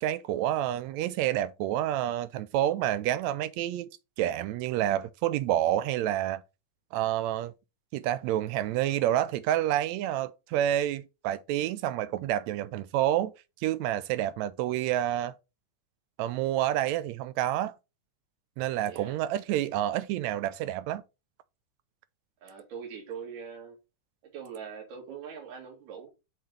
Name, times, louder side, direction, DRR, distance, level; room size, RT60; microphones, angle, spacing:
voice 1, 0.0-3.9 4.2-6.4 6.9-7.5 7.9-13.3 13.6-15.3 16.2-17.7 18.6-21.0, right 12 dB, 80° right, 1.6 m, -28 dB
voice 2, 18.8-19.2 22.4-23.8 24.2-26.1, right 6 dB, 60° right, 3.3 m, -42 dB
6.4 x 4.3 x 5.2 m
omnidirectional pair, 3.7 m